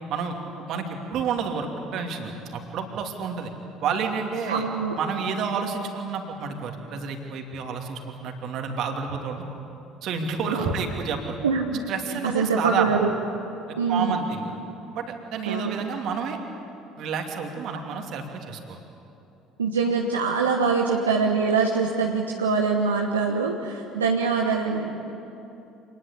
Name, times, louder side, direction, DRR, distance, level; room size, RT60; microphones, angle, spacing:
voice 1, 0.1-3.5 3.8-4.6 5.0-9.4 10.0-11.4 11.9-13.0 13.9-14.5 14.9-16.4 17.0-18.8, right 5 dB, 55° right, 3 dB, 2.8 m, -30 dB
voice 2, 4.5-5.0 10.5-10.7 11.4-11.8 12.2-13.1 13.8-14.2 15.5-15.7 19.6-25.0, right 5 dB, 85° right, 0 dB, 1.2 m, -24 dB
26.0 x 20.0 x 8.3 m, 2.8 s
figure-of-eight pair, 55°, 0 cm